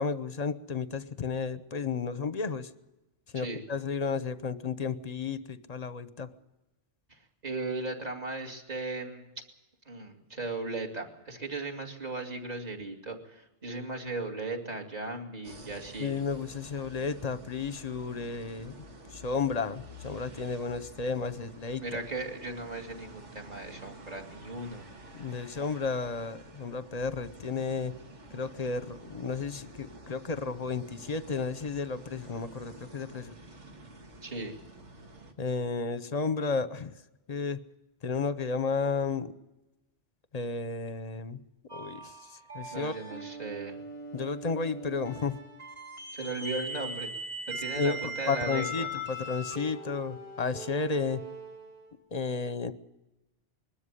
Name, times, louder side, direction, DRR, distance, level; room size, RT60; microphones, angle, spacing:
voice 1, 0.0-2.7 3.3-6.3 16.0-18.7 19.1-22.0 25.1-27.9 28.3-33.3 35.4-37.0 37.3-37.6 38.0-39.3 40.3-41.4 41.7-42.9 44.1-45.4 47.5-51.2 52.1-52.7, left 5 dB, 40° left, 14 dB, 0.8 m, -32 dB
voice 2, 7.1-9.4 9.9-16.1 21.8-24.9 34.2-34.6 42.7-43.8 46.1-47.1 47.5-48.9, right 2 dB, 35° right, 2 dB, 2.4 m, -37 dB
sound 1, 15.4-35.3, right 1 dB, 85° right, 2.1 m, -50 dB
sound 2, 41.7-51.9, right 1 dB, 55° right, 5.1 m, -40 dB
21.5 x 13.0 x 9.8 m, 1.0 s
omnidirectional pair, 1.2 m